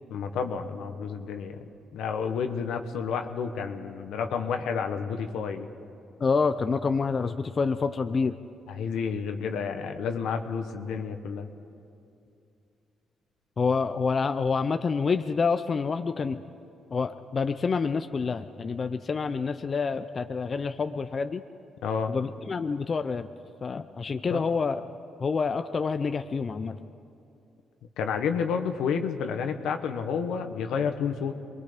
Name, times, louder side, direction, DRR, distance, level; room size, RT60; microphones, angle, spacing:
voice 1, 0.1-1.6 1.9-5.7 8.7-11.5 21.8-22.1 24.3-24.4 28.0-31.3, left 6 dB, 80° left, 6 dB, 1.4 m, -30 dB
voice 2, 6.2-8.4 13.6-16.4 16.9-21.4 22.1-23.3 23.6-24.8 25.2-26.8, left 5 dB, 40° left, 9 dB, 0.6 m, -27 dB
27.0 x 21.5 x 5.2 m, 2.6 s
cardioid pair, 90°, 0 cm